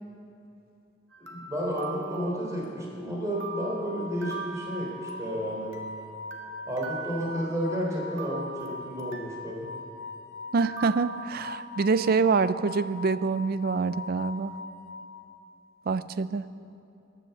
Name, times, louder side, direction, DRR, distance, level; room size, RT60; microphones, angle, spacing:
sound 1, 1.1-3.0 3.4-5.9 6.3-7.8 8.2-9.5 10.6-12.0, right 7 dB, 85° right, 1.5 m, -42 dB
voice 1, 1.2-5.7 6.7-9.7, equal, 15° right, -3 dB, 3.7 m, -32 dB
sound 2, 3.2-15.5, left 3 dB, 75° left, 2.5 m, -41 dB
voice 2, 10.5-14.5 15.9-16.4, right 4 dB, 50° right, 14 dB, 0.4 m, -26 dB
15.5 x 10.0 x 7.0 m, 2.8 s
head